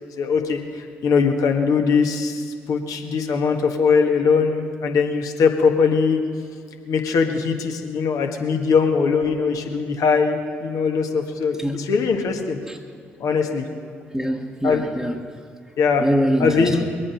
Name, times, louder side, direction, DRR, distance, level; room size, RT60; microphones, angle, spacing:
voice 1, 0.0-6.2 6.8-12.6 13.2-13.6 14.6-14.8 15.8-16.1 16.4-16.9, left 5 dB, 65° left, 4 dB, 1.5 m, -21 dB
voice 2, 11.6-11.9 12.7-12.8 14.1-15.2 16.0-16.8, equal, ahead, -1 dB, 1.2 m, -23 dB
22.5 x 8.6 x 5.8 m, 2.2 s
hypercardioid pair, 40°, 6 cm